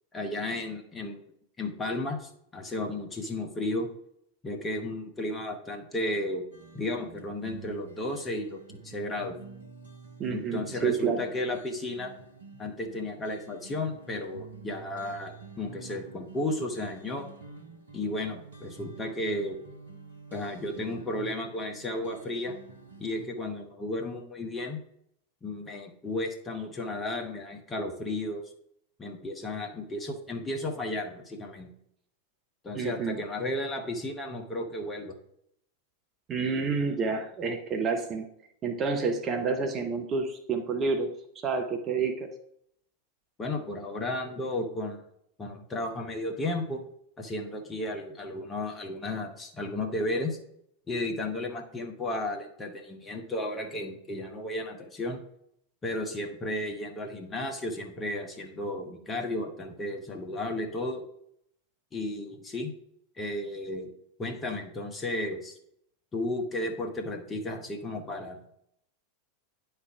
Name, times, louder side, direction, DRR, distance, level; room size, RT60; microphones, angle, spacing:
voice 1, 0.1-1.2 1.6-3.9 4.4-6.4 6.7-9.4 10.3-12.1 12.6-17.3 17.9-19.6 20.3-22.6 23.0-24.8 25.4-28.4 29.0-31.7 32.6-35.1 43.4-45.0 45.4-46.8 47.2-50.4 50.9-55.2 55.8-61.0 61.9-62.7 63.2-63.9 64.2-65.6 66.1-68.6, left 1 dB, 20° left, 2 dB, 1.2 m, -33 dB
sad melody, 6.5-23.3, right 4 dB, 75° right, 1.0 m, -48 dB
voice 2, 10.2-11.2 32.7-33.2 36.3-38.3 38.6-42.3, right 5 dB, 25° right, 5 dB, 0.8 m, -29 dB
9.7 x 3.4 x 4.8 m, 0.72 s
figure-of-eight pair, 90°, 0 cm